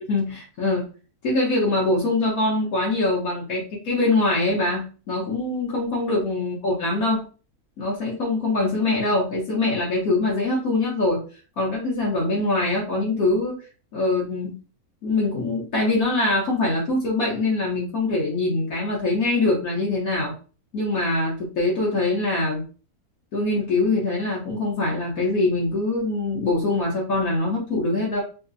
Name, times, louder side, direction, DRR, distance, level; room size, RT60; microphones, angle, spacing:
voice 1, 0.1-0.9 1.2-7.2 7.8-11.2 11.6-13.6 13.9-14.5 15.0-20.3 20.7-22.6 23.3-28.2, left 2 dB, 70° left, -4 dB, 1.4 m, -23 dB
4.9 x 2.1 x 2.6 m, 0.37 s
omnidirectional pair, 1.6 m